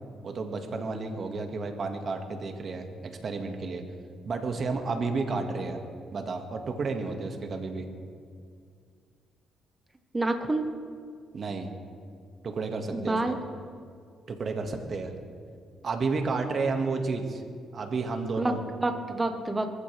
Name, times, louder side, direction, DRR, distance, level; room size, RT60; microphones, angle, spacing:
voice 1, 0.2-2.9 3.2-3.8 4.3-5.8 6.1-7.9 11.3-11.7 12.4-13.4 14.3-15.1 15.8-17.4 17.7-18.6, right 4 dB, 50° right, 4 dB, 1.9 m, -31 dB
voice 2, 10.1-10.7 12.9-13.3 18.4-19.7, right 2 dB, 20° right, 6 dB, 1.3 m, -28 dB
23.0 x 14.5 x 3.5 m, 2.2 s
cardioid pair, 90°, 0 cm